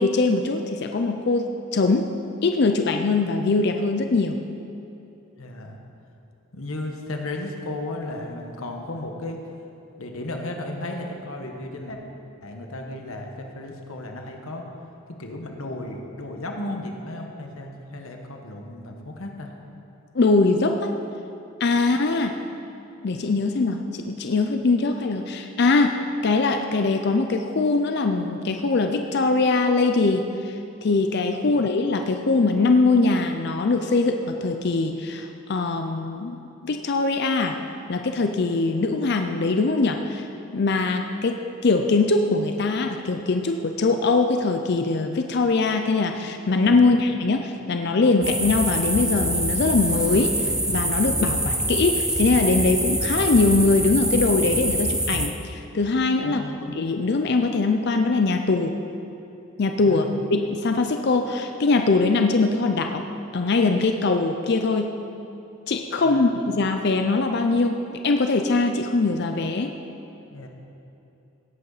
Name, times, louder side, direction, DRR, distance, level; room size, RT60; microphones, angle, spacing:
voice 1, 0.0-2.1 2.4-4.4 20.1-20.9 21.6-22.3 23.0-25.9 26.2-36.4 36.6-37.6 37.9-40.3 40.5-41.4 41.6-58.7 59.6-63.1 63.3-64.9 65.7-69.7, left 3 dB, 50° left, 5 dB, 0.5 m, -22 dB
voice 2, 5.4-5.8 6.5-9.4 10.0-12.0 12.4-14.6 15.2-19.5 31.4-31.6 46.7-47.0 56.2-56.6 59.8-60.1 66.0-66.2 70.3-70.5, left 2 dB, 75° left, 2 dB, 1.3 m, -34 dB
sound 1, 48.2-55.3, right 1 dB, 5° right, 0.5 m, -25 dB
17.0 x 8.3 x 4.0 m, 2.9 s
head